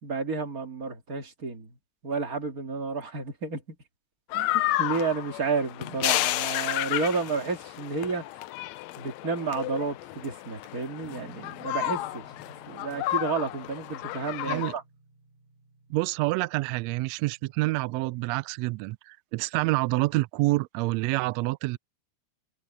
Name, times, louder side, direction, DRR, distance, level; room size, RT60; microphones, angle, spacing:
voice 1, 0.0-1.8 2.0-3.8 4.3-8.3 9.0-12.2 12.7-14.8, right 4 dB, 30° right, 2.2 m, -31 dB
sound 1, 4.3-14.7, left 16 dB, 75° left, 1.7 m, -31 dB
sound 2, 11.0-18.6, left 1 dB, 30° left, 2.8 m, -55 dB
voice 2, 15.9-21.8, right 21 dB, 80° right, 1.6 m, -27 dB
omnidirectional pair, 3.4 m